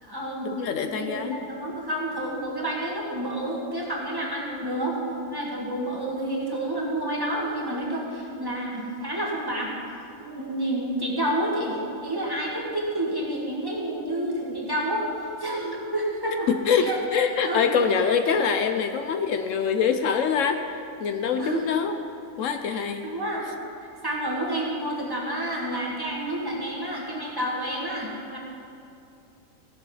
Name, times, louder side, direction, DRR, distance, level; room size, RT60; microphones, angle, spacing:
voice 1, 0.0-0.5 0.8-5.0 5.3-9.7 10.2-15.1 15.4-16.5 16.8-17.7 21.4-21.6 22.6-23.5 24.0-28.4, right 1 dB, 15° right, -4 dB, 1.9 m, -29 dB
voice 2, 0.5-1.4 16.5-20.6 21.0-22.0 22.4-23.1, left 6 dB, 75° left, 7 dB, 0.9 m, -24 dB
16.0 x 7.0 x 5.5 m, 2.6 s
omnidirectional pair, 1.4 m